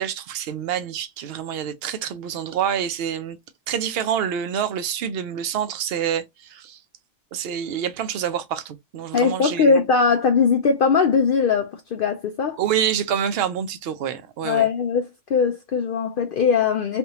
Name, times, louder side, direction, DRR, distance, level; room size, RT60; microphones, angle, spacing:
voice 1, 0.0-3.4 3.7-6.8 7.3-9.7 12.6-14.7, right 9 dB, 60° right, 0.7 m, -27 dB
voice 2, 9.1-12.6 14.4-17.0, left 5 dB, 70° left, 0.5 m, -20 dB
3.4 x 2.6 x 2.9 m
omnidirectional pair, 1.4 m